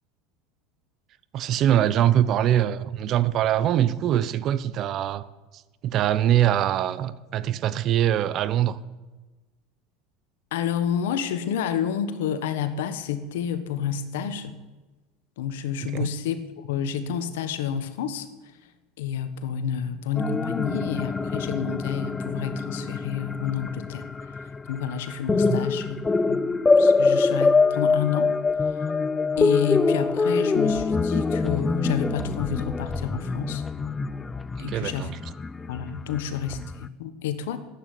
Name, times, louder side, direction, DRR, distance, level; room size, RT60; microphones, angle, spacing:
voice 1, 1.3-5.3 5.8-8.8 15.8-16.1 25.4-25.6 34.6-35.1, right 11 dB, 50° right, 0.8 m, -23 dB
voice 2, 10.5-14.6 15.4-18.3 19.0-24.0 24.7-26.0 26.3-26.5 26.8-28.3 28.7-28.9 29.4-33.6 34.6-35.1 35.7-37.6, left 8 dB, 80° left, 1.3 m, -29 dB
sound 1, 20.2-36.9, left 4 dB, 15° left, 0.5 m, -25 dB
11.0 x 8.9 x 9.9 m
supercardioid pair, 105°, 0 cm